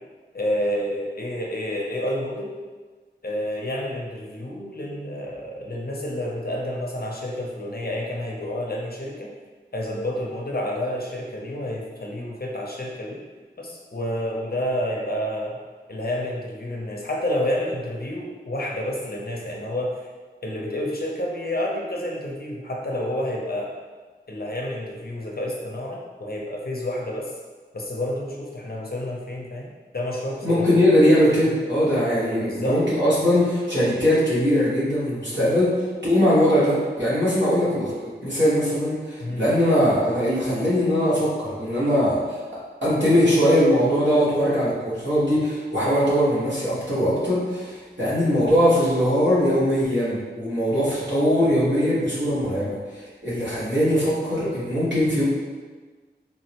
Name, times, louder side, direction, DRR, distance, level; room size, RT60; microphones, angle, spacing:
voice 1, 0.3-2.5 3.2-9.3 9.7-13.2 13.6-15.6 15.9-20.1 20.4-23.7 24.3-27.3 27.7-30.8 32.4-32.8 39.2-39.4, left 1 dB, 55° left, -2 dB, 0.5 m, -29 dB
voice 2, 30.4-35.7 36.0-42.4 42.8-55.2, equal, 75° right, -10 dB, 1.2 m, -21 dB
3.6 x 2.0 x 2.8 m, 1.4 s
wide cardioid pair, 40°, 19 cm